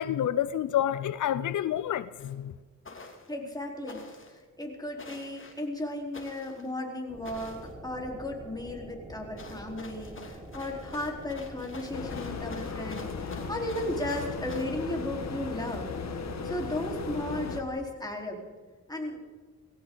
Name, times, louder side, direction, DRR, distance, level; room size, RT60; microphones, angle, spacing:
voice 1, 0.0-2.5, left 11 dB, 80° left, 0.6 m, -28 dB
sound 1, 2.2-2.3 2.8-3.3 3.9-4.4 5.0-5.6 6.1-6.7 7.2-7.7 9.4-14.6, left 3 dB, 40° left, 2.7 m, -48 dB
voice 2, 3.3-4.0 4.6-15.9 16.4-18.4 18.9-19.2, left 1 dB, 15° left, 4.2 m, -35 dB
sound 2, 7.1-17.7, right 1 dB, 15° right, 5.0 m, -46 dB
sound 3, 11.9-17.6, left 5 dB, 60° left, 1.6 m, -37 dB
19.0 x 16.5 x 4.0 m
cardioid pair, 75°, 30 cm